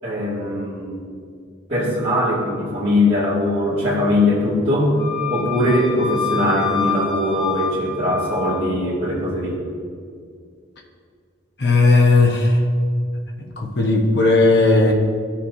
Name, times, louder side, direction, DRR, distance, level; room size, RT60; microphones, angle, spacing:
voice 1, 0.0-1.0 1.7-4.9 5.3-9.6, left 1 dB, 30° right, -13 dB, 2.4 m, -21 dB
Wind instrument woodwind instrument, 5.0-8.6, left 5 dB, 25° left, 2.1 m, -27 dB
voice 2, 11.6-12.6 13.6-14.9, left 3 dB, 55° left, 0 dB, 1.1 m, -15 dB
15.0 x 5.8 x 2.8 m, 2.1 s
head